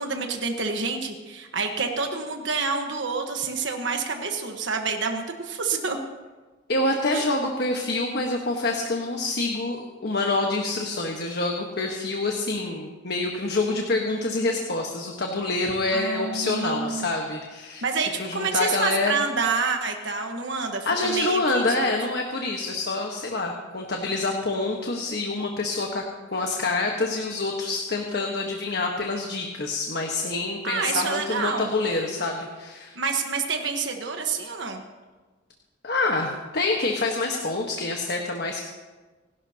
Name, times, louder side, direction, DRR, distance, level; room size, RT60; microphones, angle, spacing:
voice 1, 0.0-6.0 7.1-7.2 15.9-17.1 17.8-21.9 30.6-31.7 32.9-34.8, right 4 dB, 65° right, 4 dB, 1.3 m, -28 dB
voice 2, 6.7-17.8 18.2-19.1 20.8-26.0 26.3-33.0 35.8-38.7, left 2 dB, 55° left, 1 dB, 1.4 m, -26 dB
28.0 x 12.0 x 2.9 m, 1.3 s
head